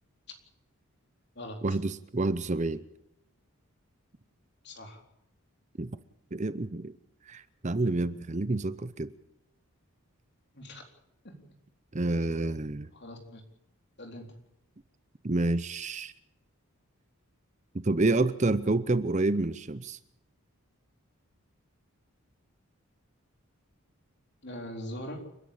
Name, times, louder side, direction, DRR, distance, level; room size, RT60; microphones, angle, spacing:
voice 1, 1.6-2.8 5.8-5.9 6.3-6.9 7.3-9.1 11.9-12.9 15.2-16.1 17.7-20.0, right 2 dB, 30° right, 15 dB, 0.7 m, -28 dB
voice 2, 4.6-5.0 10.6-10.8 11.2-11.3 12.9-13.4 14.0-14.3 24.4-25.2, left 1 dB, 50° left, 4 dB, 3.9 m, -41 dB
30.0 x 10.5 x 8.6 m, 0.82 s
head